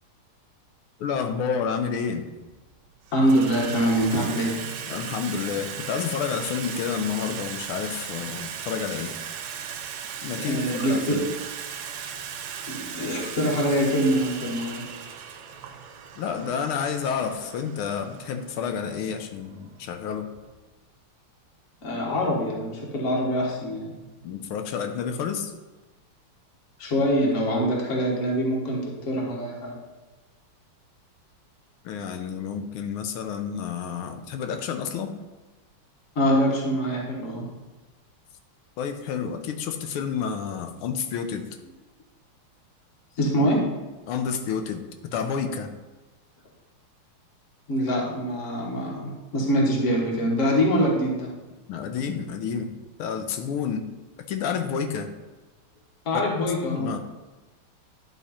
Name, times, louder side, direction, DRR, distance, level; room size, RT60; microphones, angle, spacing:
voice 1, 1.0-2.3 4.9-9.1 10.2-11.2 16.2-20.3 24.2-25.5 31.8-35.2 38.8-41.5 44.1-45.7 51.7-53.9 54.3-55.1 56.1-56.2 56.6-57.0, left 7 dB, 80° left, 7 dB, 1.5 m, -30 dB
Water tap faucet / Sink (filling or washing), 1.2-1.3 2.2-2.6 2.9-20.5, right 8 dB, 85° right, 1.6 m, -37 dB
voice 2, 3.1-4.5 10.4-11.2 12.7-14.8 21.8-23.9 26.8-29.8 36.1-37.5 43.2-43.6 47.7-51.3 56.0-56.9, equal, 40° left, -3 dB, 1.6 m, -24 dB
11.0 x 3.7 x 4.2 m, 1.2 s
omnidirectional pair, 2.4 m